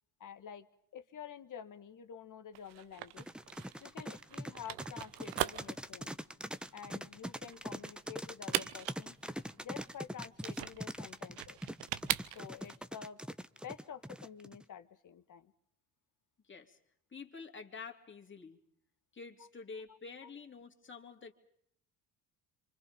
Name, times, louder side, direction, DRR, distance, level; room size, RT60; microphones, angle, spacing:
voice 1, 0.2-0.7 0.9-3.3 3.8-6.1 6.7-9.1 9.6-11.6 12.3-13.2 13.6-15.5, left 8 dB, 50° left, 10 dB, 1.8 m, -49 dB
sound 1, 2.5-12.8, right 16 dB, 85° right, 0.9 m, -41 dB
sound 2, 3.2-14.6, equal, ahead, 0.9 m, -43 dB
voice 2, 16.4-16.8 17.1-18.6 19.1-21.3, left 5 dB, 30° left, 3 dB, 3.0 m, -48 dB
28.0 x 25.0 x 5.3 m, 0.70 s
supercardioid pair, 75°, 41 cm